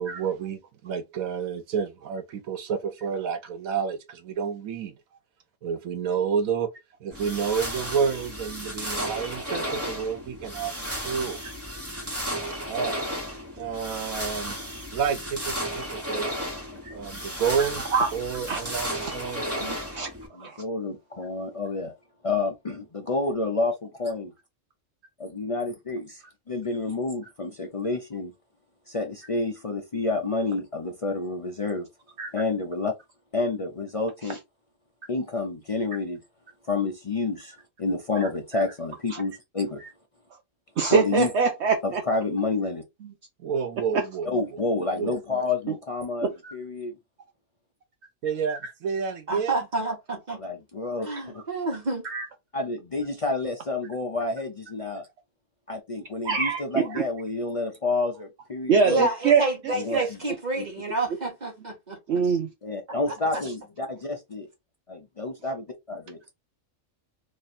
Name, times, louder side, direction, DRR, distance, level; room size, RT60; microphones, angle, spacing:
voice 1, 0.0-4.9 5.6-6.7 7.0-11.4 12.7-13.0 13.6-14.6 14.9-16.3 16.9-17.8 18.1-19.5 43.4-44.3 45.0-45.2 48.2-49.6, right 6 dB, 85° right, 1.1 m, -29 dB
sound 1, 7.1-20.3, equal, 10° right, 1.2 m, -34 dB
voice 2, 17.6-18.1 18.5-18.7 19.0-19.1 19.6-20.1 20.4-20.5 32.2-32.3 38.5-38.6 39.1-39.2 40.8-42.0 43.9-44.0 46.2-46.5 48.5-48.6 51.1-51.2 52.0-52.3 56.2-57.0 58.7-59.4 59.9-60.1 62.1-62.5, right 5 dB, 65° right, 0.8 m, -24 dB
voice 3, 20.3-21.9 22.2-24.3 25.2-28.3 28.9-31.9 32.3-32.9 33.3-34.4 35.1-36.2 36.7-39.8 40.9-41.3 41.8-42.8 44.3-46.9 50.4-51.4 52.5-55.1 55.7-59.1 59.7-60.0 60.5-60.6 62.6-64.5 64.9-66.2, left 3 dB, 55° left, 0.4 m, -29 dB
voice 4, 49.3-50.4 51.0-52.1 58.9-62.0 62.2-62.4, right 2 dB, 35° right, 1.1 m, -29 dB
3.0 x 2.5 x 4.1 m
omnidirectional pair, 1.4 m